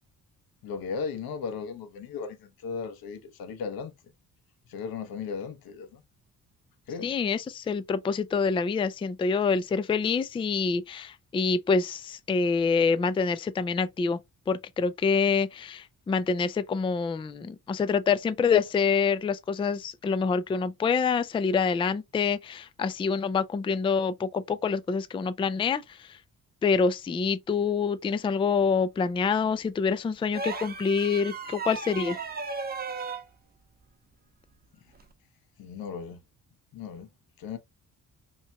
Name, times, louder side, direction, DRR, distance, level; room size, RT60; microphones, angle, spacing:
voice 1, 0.6-3.9 4.7-6.0 6.9-7.1 35.6-36.2 36.7-37.1 37.4-37.6, left 5 dB, 90° left, 1.0 m, -36 dB
voice 2, 7.0-14.2 14.5-26.1 26.6-32.2, left 5 dB, 15° left, 0.3 m, -26 dB
sound 1, 30.3-33.3 34.9-35.1, right 4 dB, 25° right, 0.8 m, -35 dB
5.5 x 2.9 x 2.2 m
cardioid pair, 120°, 35 cm